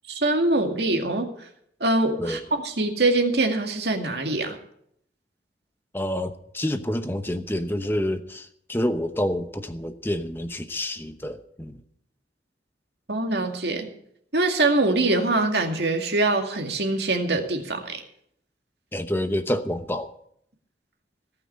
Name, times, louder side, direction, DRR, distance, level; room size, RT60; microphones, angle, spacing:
voice 1, 0.1-1.3 1.8-4.6 13.1-13.9 14.3-18.0, right 2 dB, 70° right, 4 dB, 2.2 m, -23 dB
voice 2, 5.9-11.8 18.9-20.1, left 1 dB, 10° left, 9 dB, 0.9 m, -28 dB
18.0 x 6.1 x 9.8 m, 0.70 s
head